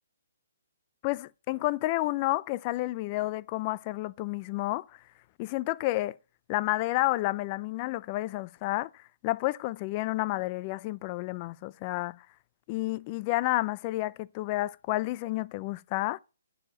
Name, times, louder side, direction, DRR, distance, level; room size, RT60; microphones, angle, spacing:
voice 1, 1.0-5.0 5.4-6.2 6.5-12.3 12.7-16.2, left 18 dB, 30° left, 0.4 m, -30 dB
9.7 x 5.0 x 5.5 m
hypercardioid pair, 140°, 0 cm